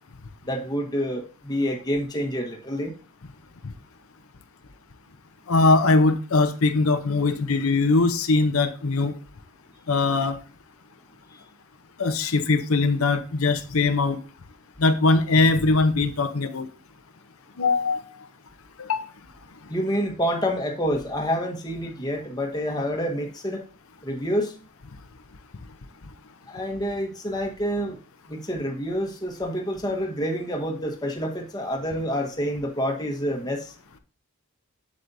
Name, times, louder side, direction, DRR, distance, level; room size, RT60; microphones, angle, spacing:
voice 1, 0.4-2.9 11.3-11.4 19.7-23.6 24.0-24.6 26.5-28.0 28.3-33.7, equal, 20° left, 1.3 m, -28 dB
voice 2, 5.5-9.1 9.9-10.4 12.0-14.2 14.8-16.7 17.6-18.0 18.8-19.0, left 3 dB, 75° left, 0.8 m, -21 dB
7.9 x 7.5 x 2.7 m
head